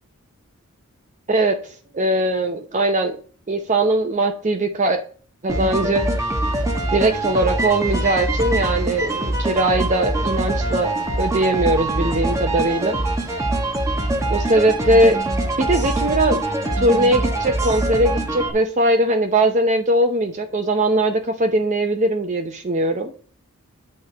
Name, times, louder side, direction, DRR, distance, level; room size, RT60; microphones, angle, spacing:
voice 1, 1.3-1.6 1.9-3.2 3.5-5.0 5.4-6.0 6.9-13.0 14.3-15.2 15.6-16.4 16.8-23.1, right 1 dB, 35° right, 5 dB, 0.7 m, -20 dB
sound 1, 5.5-18.5, right 2 dB, 15° right, 1.1 m, -23 dB
8.6 x 4.4 x 5.4 m, 0.41 s
head